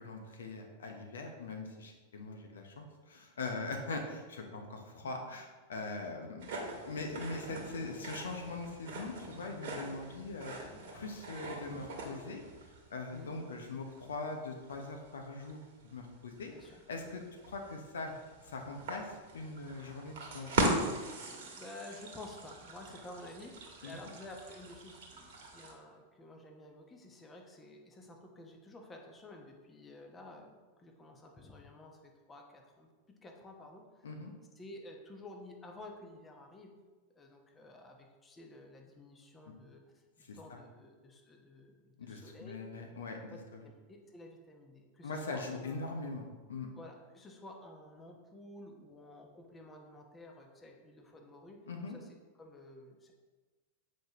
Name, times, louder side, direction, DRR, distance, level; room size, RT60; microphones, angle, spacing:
voice 1, 0.0-6.5 6.8-12.4 12.9-15.6 15.9-18.1 18.4-20.6 23.8-23.9 34.0-34.3 39.5-39.6 40.2-40.6 42.0-43.6 45.0-46.7 51.7-52.0, left 3 dB, 65° left, 3 dB, 0.8 m, -42 dB
sound 1, 6.4-25.7, right 2 dB, 55° right, 1.3 m, -40 dB
voice 2, 21.2-30.5 30.8-32.9 33.2-33.8 34.6-36.7 37.1-39.8 40.2-42.7 43.3-43.4 43.9-45.9 46.8-51.6 51.9-52.1 52.4-53.1, left 2 dB, 15° left, 2 dB, 1.0 m, -52 dB
7.6 x 5.2 x 3.0 m, 1.3 s
figure-of-eight pair, 90°, 0 cm